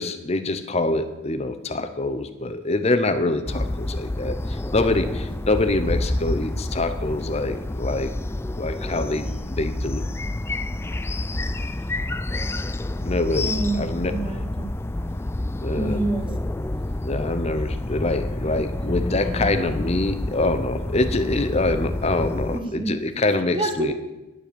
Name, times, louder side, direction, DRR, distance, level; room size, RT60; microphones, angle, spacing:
voice 1, 0.0-8.1 8.6-10.0 13.0-14.2 15.6-16.0 17.0-23.9, left 2 dB, 30° left, 9 dB, 0.7 m, -25 dB
sound 1, 3.5-22.6, left 1 dB, 10° left, 0.3 m, -28 dB
voice 2, 13.4-13.8 14.1-14.7 15.7-16.3 22.5-23.0 23.5-23.9, right 2 dB, 25° right, 5 dB, 1.0 m, -27 dB
11.0 x 7.6 x 6.8 m, 1.0 s
head